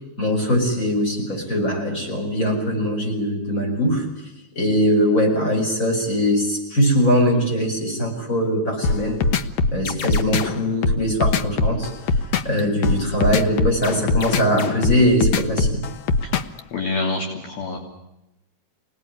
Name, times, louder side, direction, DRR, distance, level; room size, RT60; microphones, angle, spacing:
voice 1, 0.2-4.1 4.6-9.2 9.7-11.9 12.4-15.8, equal, 15° left, 0 dB, 7.9 m, -21 dB
sound 1, 8.8-16.6, left 4 dB, 80° left, 1.6 m, -21 dB
voice 2, 16.7-17.8, left 3 dB, 60° left, 1 dB, 4.8 m, -26 dB
27.5 x 19.0 x 9.8 m, 0.92 s
omnidirectional pair, 5.0 m